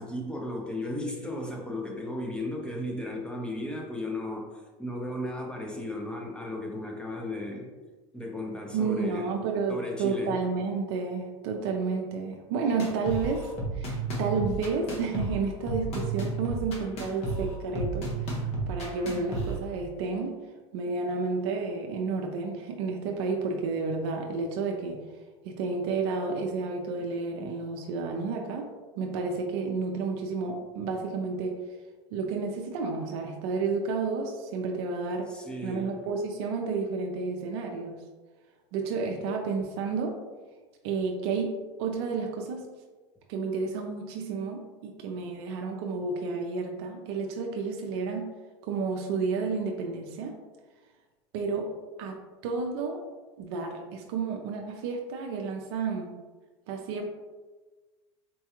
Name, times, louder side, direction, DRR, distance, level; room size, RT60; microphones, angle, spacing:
voice 1, 0.0-7.7 8.1-9.3 9.7-10.4 35.3-35.9, left 1 dB, 5° left, 0 dB, 0.7 m, -35 dB
voice 2, 8.7-20.3 20.7-25.0 25.4-28.7 29.0-31.6 32.1-35.3 35.6-38.0 38.7-40.2 40.8-41.5 41.8-42.6 43.3-48.3 48.7-50.4 51.3-51.7 52.0-52.2 52.4-53.1 53.4-56.1 56.7-57.1, right 4 dB, 75° right, 2 dB, 0.5 m, -31 dB
sound 1, 12.8-19.6, right 3 dB, 50° left, 1.1 m, -32 dB
4.5 x 2.3 x 2.9 m, 1.3 s
supercardioid pair, 105°, 14 cm